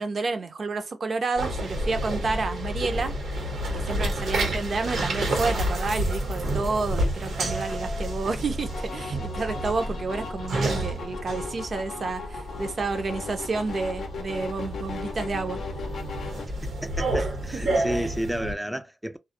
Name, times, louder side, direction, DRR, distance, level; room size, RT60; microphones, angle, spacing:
voice 1, 0.0-3.1 3.7-15.6 17.5-18.1, right 3 dB, 55° right, 0.5 m, -30 dB
sound 1, 1.4-18.5, right 1 dB, 90° right, 1.0 m, -30 dB
sound 2, 8.6-16.5, left 5 dB, 80° left, 0.5 m, -38 dB
voice 2, 16.6-19.2, equal, 5° right, 0.3 m, -31 dB
2.2 x 2.0 x 2.8 m
cardioid pair, 70°, 0 cm